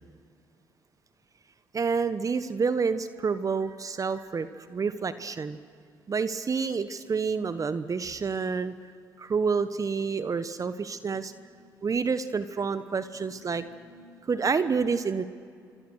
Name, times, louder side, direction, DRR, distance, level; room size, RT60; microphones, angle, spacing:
voice 1, 1.7-5.6 6.1-8.7 9.2-11.3 11.8-13.6 14.3-15.2, right 5 dB, 40° right, 12 dB, 1.1 m, -28 dB
voice 2, 10.7-12.0 13.1-14.7, right 3 dB, 60° right, 0 dB, 4.5 m, -56 dB
26.0 x 25.5 x 6.4 m, 2.3 s
hypercardioid pair, 55°, 9 cm